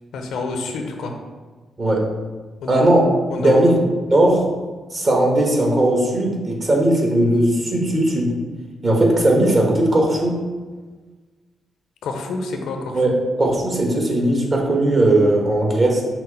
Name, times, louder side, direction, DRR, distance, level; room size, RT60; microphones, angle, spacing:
voice 1, 0.1-1.1 2.6-2.8 3.3-3.7 12.0-13.0, left 3 dB, 80° left, 4 dB, 0.5 m, -28 dB
voice 2, 2.7-3.0 3.4-3.8 4.1-4.5 4.9-8.3 8.8-10.4 12.9-16.0, right 1 dB, 45° right, -1 dB, 1.2 m, -17 dB
5.8 x 2.0 x 3.8 m, 1.4 s
supercardioid pair, 50°, 0 cm